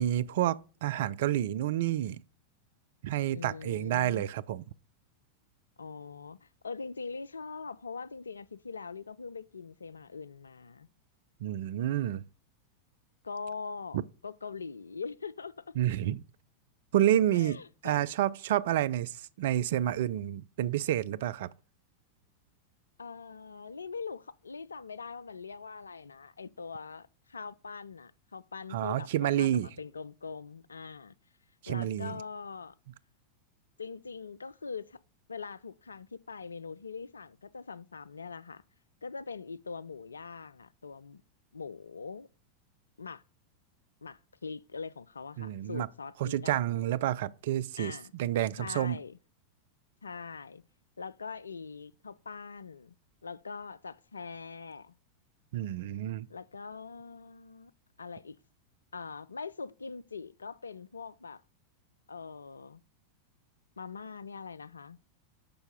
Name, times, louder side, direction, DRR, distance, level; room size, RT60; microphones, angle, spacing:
voice 1, 0.0-2.2 3.0-4.6 11.4-12.2 13.9-14.0 15.8-16.2 16.9-21.5 28.7-29.7 31.6-32.2 45.4-45.9 46.2-49.0 55.5-56.3, right 12 dB, 55° right, 0.3 m, -29 dB
voice 2, 3.3-4.3 5.8-10.9 13.2-15.6 17.3-18.0 23.0-29.1 29.4-31.1 31.7-32.8 33.8-35.0 35.3-38.6 39.0-41.2 41.5-42.3 43.0-43.2 44.0-47.0 47.8-48.1 48.6-49.2 50.0-50.6 51.0-53.0 53.2-54.9 56.3-57.7 58.0-58.4 58.9-61.4 62.1-62.8 63.8-65.0, left 5 dB, 75° left, 0.3 m, -42 dB
6.9 x 5.5 x 5.2 m
figure-of-eight pair, 90°, 0 cm